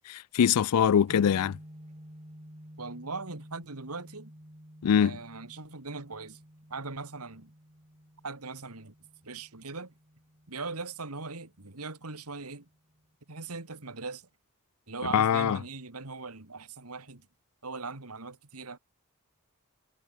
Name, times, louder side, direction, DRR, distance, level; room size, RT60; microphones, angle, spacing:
voice 1, 0.1-1.6 4.8-5.2 15.1-15.6, left 8 dB, 90° left, 0.4 m, -23 dB
sound 1, 1.1-13.2, equal, 30° right, 4.2 m, -52 dB
voice 2, 2.8-4.3 5.0-6.4 6.7-7.5 8.2-8.9 9.2-9.9 10.5-12.7 13.3-14.3 14.9-17.3 17.6-18.8, right 3 dB, 85° right, 2.5 m, -40 dB
head